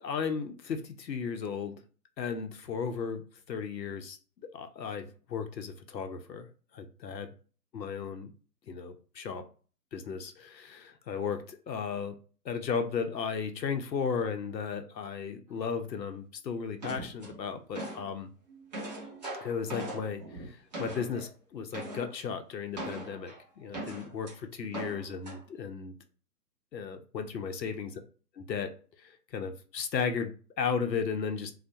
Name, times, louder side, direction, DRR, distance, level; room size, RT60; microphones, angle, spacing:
voice 1, 0.0-1.8 2.2-4.2 4.5-6.5 6.7-7.3 7.7-8.3 8.7-9.5 9.9-12.2 12.4-18.3 19.4-26.0 26.7-28.0 28.4-28.7 29.0-31.5, left 6 dB, 85° left, 8 dB, 0.6 m, -35 dB
sound 1, 16.8-18.1 18.5-21.3 21.7-22.1 22.7-24.3 24.7-25.4, right 1 dB, 25° right, 0.6 m, -40 dB
2.2 x 2.1 x 2.7 m, 0.39 s
figure-of-eight pair, 135°, 49 cm